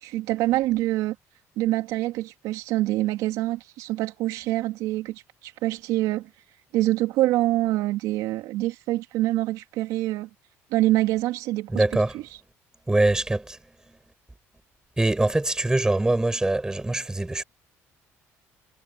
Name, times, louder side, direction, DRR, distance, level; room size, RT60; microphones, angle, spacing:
voice 1, 0.0-1.1 1.6-6.3 6.7-10.3 10.7-11.8 12.1-12.2, right 16 dB, 85° right, 3.1 m, -25 dB
voice 2, 11.7-12.2 12.9-13.6 13.9-14.0 15.0-17.4, right 2 dB, 10° right, 7.1 m, -23 dB
cardioid pair, 100°, 6 cm